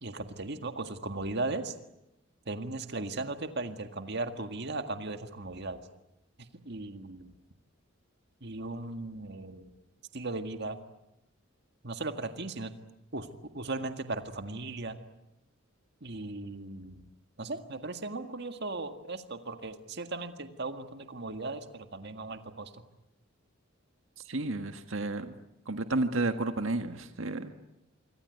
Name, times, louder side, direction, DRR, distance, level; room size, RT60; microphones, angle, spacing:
voice 1, 0.0-1.7 2.5-5.8 6.6-7.3 8.4-9.8 10.1-10.8 11.8-12.7 13.1-13.3 13.5-15.0 16.0-17.0 17.4-22.7, right 2 dB, 55° right, 8 dB, 1.9 m, -37 dB
voice 2, 24.3-25.3 25.7-27.5, right 2 dB, 80° right, 7 dB, 1.7 m, -31 dB
25.5 x 25.0 x 9.3 m, 0.88 s
head